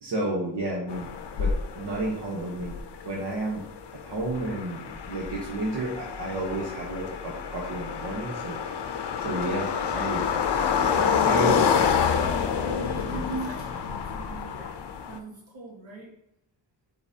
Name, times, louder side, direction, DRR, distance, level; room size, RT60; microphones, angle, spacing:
voice 1, 0.0-2.7 3.0-3.6 4.0-8.6 9.2-10.3 11.2-11.7 13.1-13.5, right 2 dB, 60° right, -3 dB, 1.2 m, -31 dB
sound 1, 0.9-15.2, left 7 dB, 65° left, 0.6 m, -28 dB
voice 2, 10.8-11.9 12.6-13.7 14.1-14.8 15.0-16.1, right 1 dB, 85° right, -3 dB, 2.0 m, -42 dB
8.6 x 4.0 x 2.8 m, 0.80 s
wide cardioid pair, 165°, 45 cm